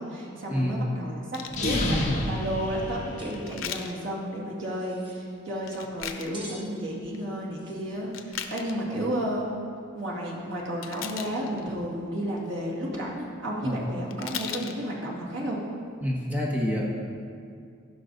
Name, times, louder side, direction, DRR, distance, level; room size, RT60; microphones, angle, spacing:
voice 1, 0.0-2.0 2.2-9.5 9.9-15.6, equal, 70° right, -4 dB, 2.1 m, -32 dB
sound 1, 1.3-1.6 3.2-3.9 5.6-6.3 6.9-7.2 8.0-8.8 10.8-11.7 13.8-13.9 14.1-14.8 15.4-15.5, left 8 dB, 85° left, 0.7 m, -37 dB
sound 2, 1.5-3.6, left 1 dB, 35° left, 1.2 m, -29 dB
sound 3, 3.2-3.4 3.6-3.7 4.6-5.2 6.3-6.7 7.5-7.8, right 1 dB, 25° right, 1.3 m, -46 dB
voice 2, 16.0-17.0, equal, 10° right, -4 dB, 1.3 m, -27 dB
15.5 x 5.8 x 4.0 m, 2.3 s
head